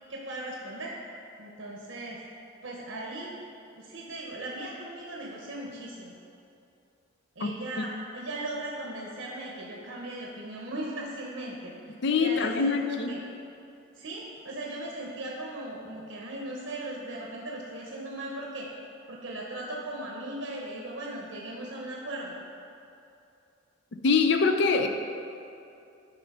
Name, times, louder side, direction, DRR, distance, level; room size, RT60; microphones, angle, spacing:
voice 1, 0.1-0.9 1.4-2.2 2.6-3.3 3.8-6.1 7.4-13.2 13.9-18.7 19.1-22.3, right 1 dB, 70° right, -2 dB, 0.9 m, -38 dB
voice 2, 12.0-13.1 24.0-24.9, left 4 dB, 55° left, 6 dB, 0.5 m, -24 dB
9.2 x 4.4 x 5.4 m, 2.7 s
head